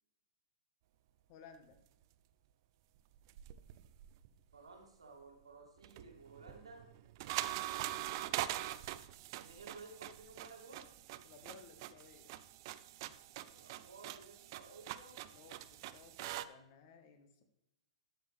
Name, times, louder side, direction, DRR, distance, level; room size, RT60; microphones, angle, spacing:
voice 1, 1.3-1.8 11.2-12.3 15.3-17.4, left 5 dB, 45° left, 8 dB, 1.5 m, -58 dB
sound 1, 3.1-4.5 5.8-16.4, right 14 dB, 50° right, 0.5 m, -44 dB
voice 2, 4.5-6.9 9.4-10.9 13.5-15.2, right 3 dB, 80° right, 1 dB, 2.5 m, -55 dB
12.5 x 7.0 x 3.4 m, 0.85 s
figure-of-eight pair, 110°, 3 cm